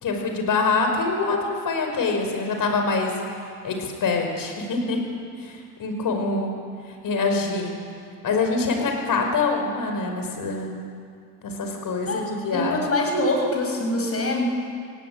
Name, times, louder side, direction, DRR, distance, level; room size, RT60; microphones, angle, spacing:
voice 1, 0.0-3.1 3.6-5.0 5.4-6.5 7.0-7.7 8.2-10.8 11.4-12.8, left 3 dB, 55° left, 3 dB, 5.2 m, -25 dB
voice 2, 12.1-14.4, left 1 dB, 35° left, 1 dB, 6.7 m, -24 dB
18.0 x 17.0 x 9.0 m, 2.3 s
supercardioid pair, 70°, 39 cm